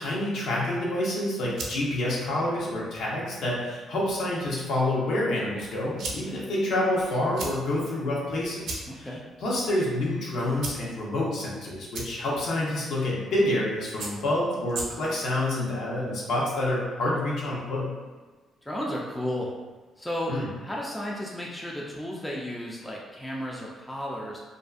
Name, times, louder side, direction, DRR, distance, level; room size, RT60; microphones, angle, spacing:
voice 1, 0.0-9.1 9.4-17.9 20.3-20.5, left 1 dB, 75° left, -5 dB, 0.7 m, -28 dB
sound 1, 1.4-15.3, right 2 dB, 75° right, 0.5 m, -42 dB
voice 2, 8.9-9.2 18.6-19.5 20.0-20.3 20.6-24.4, equal, 10° left, -4 dB, 0.4 m, -33 dB
2.5 x 2.3 x 2.3 m, 1.3 s
cardioid pair, 90°, 0 cm